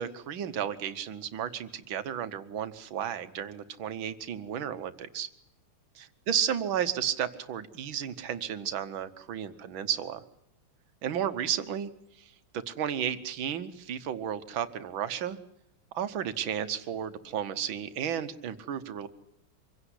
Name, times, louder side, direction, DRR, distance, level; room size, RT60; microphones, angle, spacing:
voice 1, 0.0-5.3 6.3-10.2 11.0-11.9 12.5-15.4 15.9-19.1, right 9 dB, 70° right, 11 dB, 1.9 m, -33 dB
25.5 x 16.5 x 9.9 m, 0.80 s
omnidirectional pair, 2.3 m